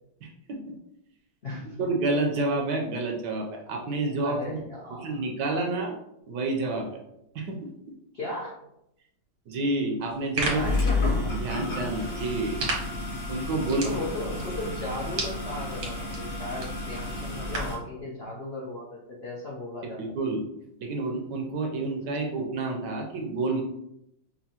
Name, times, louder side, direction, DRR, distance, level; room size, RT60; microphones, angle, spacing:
voice 1, 0.2-0.7 1.8-4.6 5.0-5.9 6.3-7.0 7.3-7.6 9.5-10.6 11.4-12.6 13.3-13.9 20.0-20.4 20.8-23.6, right 2 dB, 70° right, 2 dB, 1.1 m, -29 dB
voice 2, 1.4-1.8 4.2-5.2 8.1-8.6 10.5-11.2 13.8-20.0, left 2 dB, 65° left, -5 dB, 0.6 m, -36 dB
sound 1, 10.0-17.8, right 3 dB, 85° right, 1.9 m, -37 dB
sound 2, 10.4-17.8, left 2 dB, 45° left, 1.4 m, -31 dB
5.5 x 2.2 x 2.8 m, 0.81 s
omnidirectional pair, 2.1 m